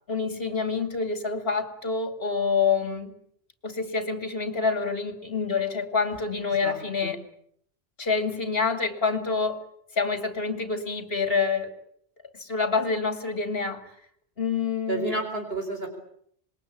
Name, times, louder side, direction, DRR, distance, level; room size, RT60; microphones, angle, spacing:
voice 1, 0.1-3.1 3.6-7.2 8.0-9.7 9.9-11.7 12.3-13.9 14.4-15.2, left 5 dB, 60° left, 2.9 m, -27 dB
voice 2, 6.6-7.1 14.9-15.9, right 2 dB, 65° right, 4.6 m, -31 dB
26.5 x 21.5 x 8.8 m
omnidirectional pair, 1.1 m